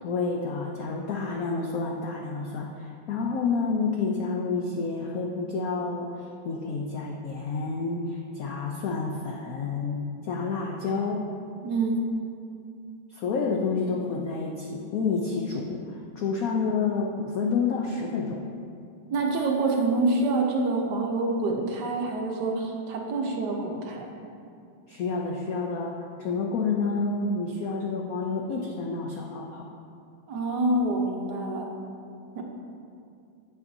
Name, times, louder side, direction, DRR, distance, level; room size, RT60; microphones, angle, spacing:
voice 1, 0.0-11.2 13.1-18.4 24.9-29.7, left 4 dB, 75° left, 0 dB, 0.8 m, -29 dB
voice 2, 11.6-12.0 19.1-24.1 30.3-31.7 32.3-32.4, right 2 dB, 65° right, 1 dB, 1.2 m, -26 dB
8.6 x 7.7 x 2.7 m, 2.5 s
omnidirectional pair, 2.2 m